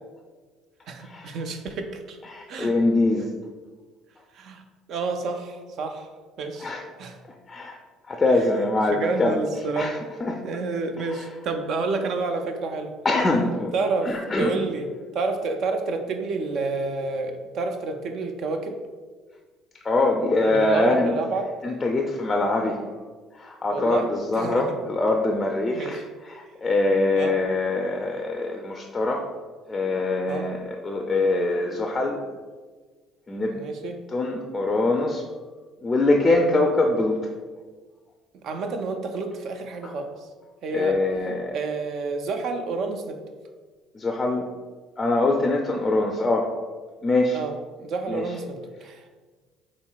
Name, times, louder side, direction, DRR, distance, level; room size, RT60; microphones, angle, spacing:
voice 1, 0.9-2.2 2.5-2.7 4.3-4.6 4.9-6.1 6.4-6.7 7.0-7.2 8.9-9.9 10.4-12.9 13.7-14.9 15.1-18.8 20.5-21.5 23.7-24.6 25.7-26.0 27.2-27.4 30.3-30.5 33.5-34.0 38.4-40.1 40.6-41.0 41.5-43.2 47.3-49.0, right 3 dB, 60° right, 6 dB, 0.4 m, -29 dB
voice 2, 2.3-3.3 6.6-6.8 7.5-7.8 8.1-9.4 9.8-10.4 11.1-11.3 13.0-13.7 14.0-14.5 19.8-21.1 21.6-22.8 23.3-29.3 29.7-32.4 33.3-33.6 34.1-35.2 35.8-37.2 39.8-39.9 40.7-41.6 43.9-44.5 45.0-46.5 47.0-47.4 48.1-48.3, left 2 dB, 25° left, 2 dB, 0.4 m, -23 dB
4.3 x 3.0 x 2.3 m, 1.4 s
hypercardioid pair, 70°, 0 cm